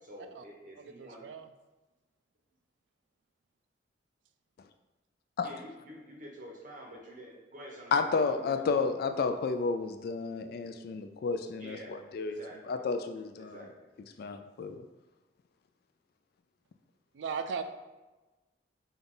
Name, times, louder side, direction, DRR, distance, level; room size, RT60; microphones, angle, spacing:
voice 1, 0.0-1.3 5.4-9.0 11.6-12.8 13.3-13.9, equal, 45° right, -1 dB, 1.0 m, -48 dB
voice 2, 0.8-1.5 17.1-17.6, right 6 dB, 80° right, 8 dB, 0.4 m, -37 dB
voice 3, 7.9-12.4 12.7-13.6 14.2-14.8, left 4 dB, 60° left, 8 dB, 0.3 m, -31 dB
5.3 x 2.4 x 3.8 m, 1.2 s
head